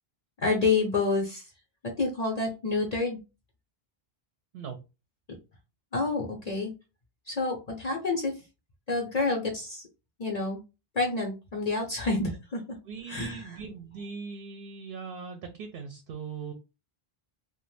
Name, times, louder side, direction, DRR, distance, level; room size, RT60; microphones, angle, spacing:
voice 1, 0.4-1.4 1.8-3.2 5.9-6.7 7.3-8.3 8.9-9.8 10.2-10.6 10.9-12.6 13.1-13.6, left 3 dB, 45° left, 0 dB, 0.7 m, -28 dB
voice 2, 12.9-16.5, right 5 dB, 65° right, 5 dB, 0.7 m, -40 dB
2.5 x 2.1 x 3.2 m, 0.28 s
omnidirectional pair, 1.0 m